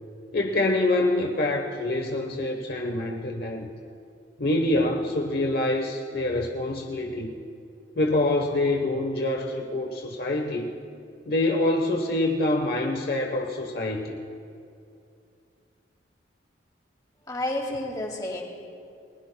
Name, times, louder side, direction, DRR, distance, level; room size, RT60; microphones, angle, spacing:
voice 1, 0.3-3.7 4.4-7.3 8.0-10.7 11.3-14.2, left 2 dB, 55° left, 1 dB, 1.0 m, -26 dB
voice 2, 17.3-18.4, left 1 dB, 20° left, 0 dB, 2.3 m, -30 dB
30.0 x 21.5 x 2.3 m, 2.5 s
head